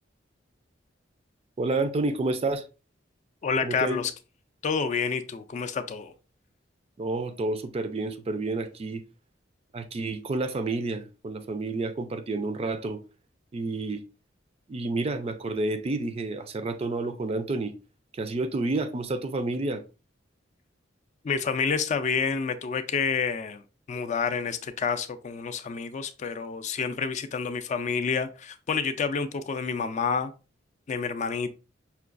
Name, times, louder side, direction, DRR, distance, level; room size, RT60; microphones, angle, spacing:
voice 1, 1.6-2.7 3.6-4.0 7.0-9.0 9.7-13.0 13.5-14.0 14.7-17.7 18.1-19.8, right 2 dB, 35° right, 0.4 m, -29 dB
voice 2, 3.4-4.1 4.6-6.1 21.2-23.6 23.9-30.3 30.9-31.5, left 5 dB, 40° left, 0.3 m, -28 dB
5.6 x 2.3 x 2.4 m
head